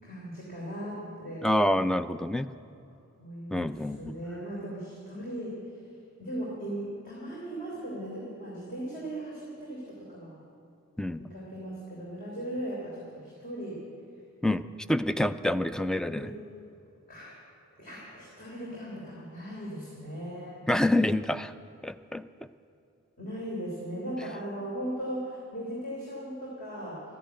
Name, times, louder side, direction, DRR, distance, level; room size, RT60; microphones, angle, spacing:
voice 1, 0.0-1.5 3.2-5.5 6.2-10.4 11.2-13.8 16.1-16.4 17.1-17.3 17.8-20.6 23.2-27.0, right 1 dB, 40° left, -5 dB, 3.4 m, -38 dB
voice 2, 1.4-2.5 3.5-4.1 11.0-11.2 14.4-14.6 14.9-16.3 20.7-21.5 21.8-22.2, left 1 dB, 5° left, 12 dB, 0.3 m, -27 dB
14.0 x 10.0 x 9.6 m, 2.7 s
head